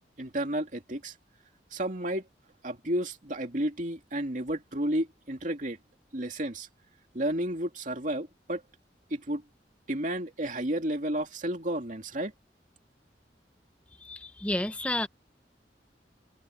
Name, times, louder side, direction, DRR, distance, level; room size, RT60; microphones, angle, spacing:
voice 1, 0.2-1.1 1.7-2.3 2.6-5.8 6.1-6.7 7.1-8.6 9.1-9.4 9.9-12.3, right 1 dB, 45° right, 2.6 m, -32 dB
voice 2, 14.0-15.1, left 1 dB, 10° left, 0.6 m, -31 dB
open air
head